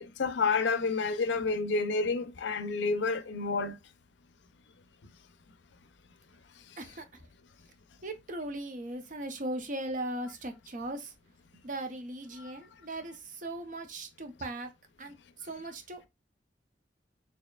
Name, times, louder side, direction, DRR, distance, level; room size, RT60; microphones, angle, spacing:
voice 1, 0.0-3.8, left 4 dB, 85° left, 0.5 m, -29 dB
voice 2, 6.8-7.2 8.0-11.1 11.6-14.7 15.0-16.1, right 1 dB, 50° right, 0.7 m, -38 dB
4.3 x 2.8 x 2.3 m
head